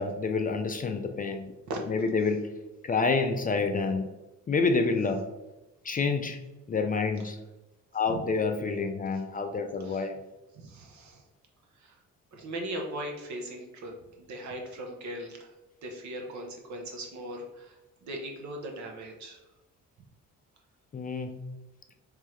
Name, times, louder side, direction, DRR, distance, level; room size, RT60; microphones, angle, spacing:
voice 1, 0.0-1.5 1.9-2.4 2.8-4.1 4.5-5.2 5.8-6.4 6.7-7.4 7.9-10.2 20.9-21.4, left 4 dB, 30° left, 5 dB, 0.4 m, -28 dB
voice 2, 10.5-11.2 11.8-12.0 12.3-15.5 15.8-19.4, right 1 dB, 65° right, 1 dB, 1.0 m, -39 dB
3.5 x 3.2 x 3.1 m, 1.0 s
cardioid pair, 90°, 30 cm